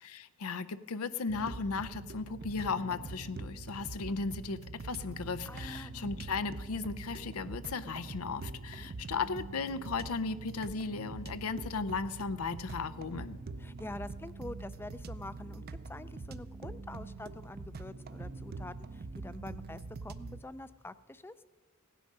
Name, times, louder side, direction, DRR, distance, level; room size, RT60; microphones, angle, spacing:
voice 1, 0.0-13.4, left 4 dB, 90° left, 14 dB, 0.6 m, -36 dB
sound 1, 1.3-20.4, right 3 dB, 45° right, 0.5 m, -44 dB
voice 2, 5.5-5.9 8.7-8.9 13.6-21.3, left 2 dB, 10° left, 15 dB, 0.3 m, -46 dB
16.5 x 10.0 x 5.3 m, 1.3 s
head